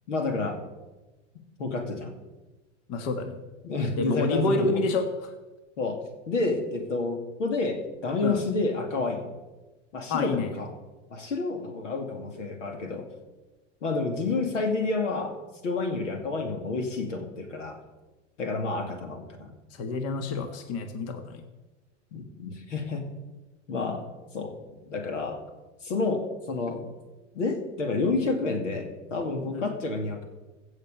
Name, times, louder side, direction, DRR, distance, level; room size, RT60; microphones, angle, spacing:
voice 1, 0.1-0.6 1.6-2.1 3.6-4.7 5.8-6.0 6.3-9.3 9.9-10.7 11.1-13.1 13.8-15.3 15.6-17.8 18.4-19.5 22.1-23.0 23.7-24.0 24.3-24.6 24.8-25.4 25.8-26.9 27.3-30.3, left 3 dB, 75° left, 5 dB, 2.5 m, -29 dB
voice 2, 2.9-3.4 4.0-5.3 8.2-8.4 10.1-10.5 19.7-21.4 29.5-29.7, left 3 dB, 40° left, 7 dB, 1.6 m, -28 dB
16.0 x 6.5 x 6.8 m, 1.1 s
hypercardioid pair, 90°, 37 cm